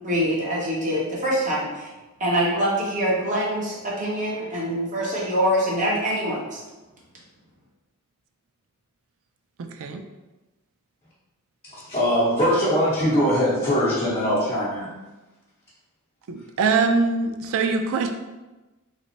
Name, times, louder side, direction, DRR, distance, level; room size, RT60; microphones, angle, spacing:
voice 1, 0.0-1.9 2.2-6.6, equal, 35° right, -5 dB, 0.9 m, -24 dB
voice 2, 9.6-10.0 16.3-18.1, right 4 dB, 65° right, 6 dB, 0.4 m, -23 dB
voice 3, 11.6-14.9, equal, 25° left, -10 dB, 1.0 m, -22 dB
3.2 x 2.0 x 3.9 m, 1.1 s
head